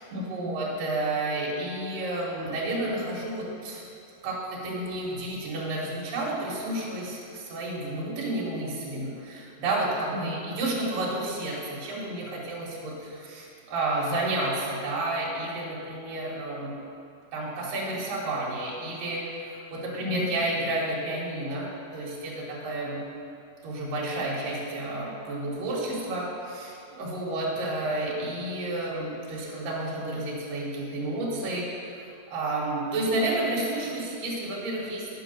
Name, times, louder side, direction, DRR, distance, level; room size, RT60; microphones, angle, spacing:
voice 1, 0.0-3.8 4.2-16.7 17.3-23.0 23.6-32.0 32.3-35.1, right 1 dB, 75° right, -5 dB, 3.3 m, -31 dB
9.6 x 5.3 x 6.4 m, 2.6 s
omnidirectional pair, 4.0 m